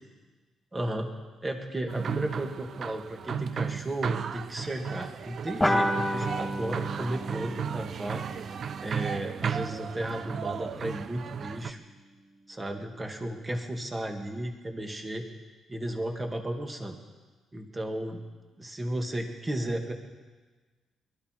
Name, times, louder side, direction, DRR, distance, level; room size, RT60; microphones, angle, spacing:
voice 1, 0.7-1.1 1.4-11.8 12.5-15.2 15.7-17.0 17.5-18.2 18.6-19.9, right 1 dB, 25° right, 3 dB, 2.4 m, -34 dB
sound 1, 1.9-11.7, right 7 dB, 60° right, 0.5 m, -35 dB
sound 2, 5.6-10.5, left 1 dB, 10° left, 2.7 m, -32 dB
21.0 x 12.5 x 4.9 m, 1.3 s
supercardioid pair, 60°, 0 cm